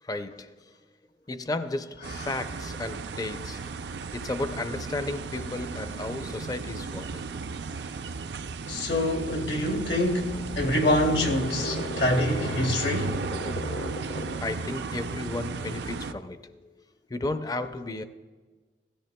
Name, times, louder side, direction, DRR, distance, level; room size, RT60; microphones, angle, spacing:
voice 1, 0.0-0.8 1.3-3.6 4.1-7.2 14.4-16.7 17.1-18.0, left 2 dB, 20° left, 0.5 m, -34 dB
sound 1, 2.0-16.1, right 4 dB, 70° right, 0.5 m, -35 dB
voice 2, 8.7-13.2, left 1 dB, 80° left, 1.6 m, -26 dB
sound 2, 9.7-14.5, left 2 dB, 55° left, 0.7 m, -37 dB
16.0 x 13.5 x 2.2 m
head